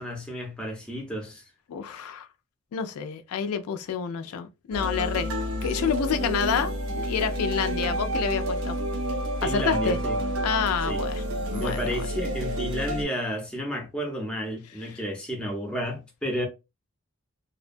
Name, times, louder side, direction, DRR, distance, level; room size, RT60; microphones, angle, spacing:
voice 1, 0.0-1.5 9.4-10.2 10.9-11.1 11.5-16.5, equal, 5° left, 0.6 m, -31 dB
voice 2, 1.7-2.3 2.7-5.3 5.6-8.8 9.4-10.0 10.4-11.2 11.5-11.8, left 7 dB, 80° left, 0.3 m, -28 dB
sound 1, 4.7-13.1, right 1 dB, 65° right, 0.6 m, -29 dB
2.6 x 2.2 x 2.5 m
head